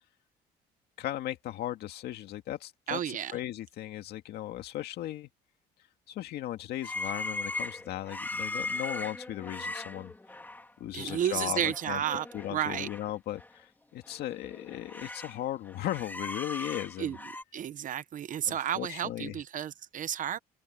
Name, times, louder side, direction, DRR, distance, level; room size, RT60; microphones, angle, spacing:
voice 1, 1.0-5.3 6.1-10.1 10.8-12.0 12.3-17.2 18.4-19.4, left 13 dB, 75° left, 2.0 m, -37 dB
voice 2, 2.9-3.3 10.9-12.9 17.0-17.2 17.5-20.4, right 10 dB, 50° right, 0.8 m, -32 dB
sound 1, 6.8-10.7 11.1-11.3 11.5-13.0 13.4-13.5 14.0-15.4 15.7-17.4, left 2 dB, 10° left, 3.1 m, -39 dB
open air
cardioid pair, 110°, 17 cm